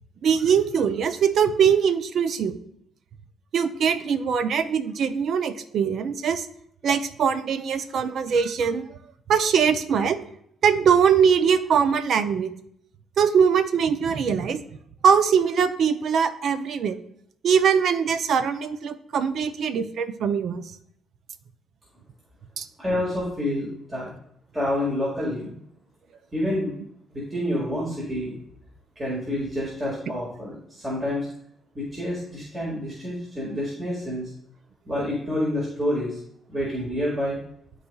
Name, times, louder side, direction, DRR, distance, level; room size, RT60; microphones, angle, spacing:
voice 1, 0.2-2.5 3.5-6.5 6.8-8.9 9.3-10.2 10.6-12.5 13.2-14.6 15.0-17.0 17.4-20.6 22.6-22.7, right 7 dB, 65° right, 11 dB, 0.6 m, -22 dB
voice 2, 22.8-24.1 24.5-25.5 26.3-26.7 27.1-28.3 29.0-31.3 31.7-34.3 34.9-36.2 36.5-37.4, left 1 dB, 20° right, -6 dB, 2.1 m, -28 dB
12.5 x 4.1 x 2.4 m, 0.70 s
cardioid pair, 90°, 0 cm